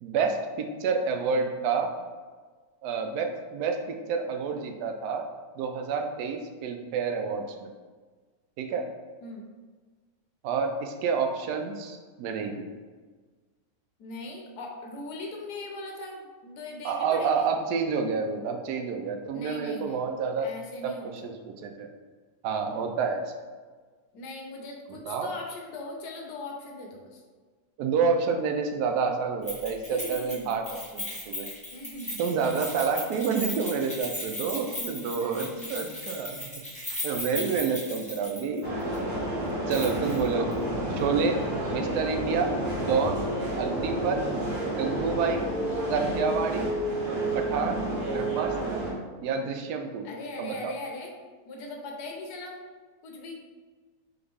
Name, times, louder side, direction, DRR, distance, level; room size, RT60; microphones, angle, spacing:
voice 1, 0.0-1.9 2.8-5.2 5.6-7.7 8.6-8.8 10.4-12.7 16.8-20.5 20.8-21.9 22.4-23.2 24.9-25.3 27.8-31.5 32.2-36.5 37.0-38.7 39.7-40.5 40.9-41.4 41.7-42.5 42.8-43.2 43.6-44.2 44.6-45.4 45.9-46.7 47.3-47.8 48.1-48.8 49.2-50.1 50.4-50.7, right 5 dB, 80° right, 5 dB, 1.1 m, -29 dB
voice 2, 14.0-17.5 19.3-20.1 20.4-21.3 22.7-22.9 24.1-27.2 29.9-30.5 31.7-32.2 35.2-35.8 37.3-37.6 50.0-51.1 51.4-52.6 53.0-53.4, left 2 dB, 80° left, 1 dB, 1.3 m, -40 dB
Keys jangling, 29.5-38.6 38.9-39.0 39.7-40.2 40.5-40.6, left 1 dB, 5° left, 0.8 m, -37 dB
sound 1, 38.6-48.9, right 1 dB, 30° right, 1.3 m, -30 dB
3.8 x 3.4 x 3.5 m, 1.4 s
omnidirectional pair, 1.7 m